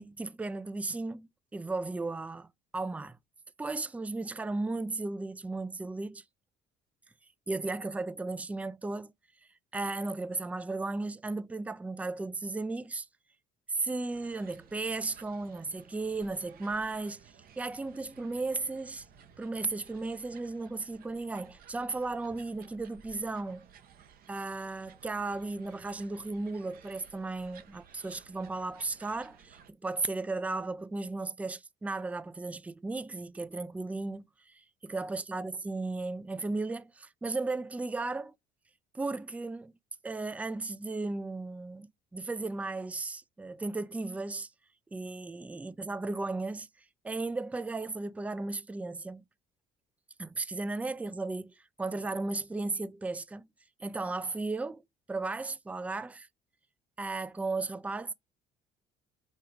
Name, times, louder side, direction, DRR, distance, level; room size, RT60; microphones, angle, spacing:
voice 1, 0.0-3.2 3.6-6.2 7.5-9.1 9.7-13.1 13.7-17.2 17.6-19.1 19.4-23.7 24.3-38.3 38.9-39.7 40.0-44.5 44.9-46.7 47.0-49.2 50.2-53.5 53.8-54.8 55.1-56.3 57.0-58.1, right 3 dB, 10° right, 0.4 m, -35 dB
sound 1, 14.1-29.7, right 7 dB, 60° right, 0.9 m, -57 dB
4.6 x 4.5 x 4.9 m
cardioid pair, 110°, 17 cm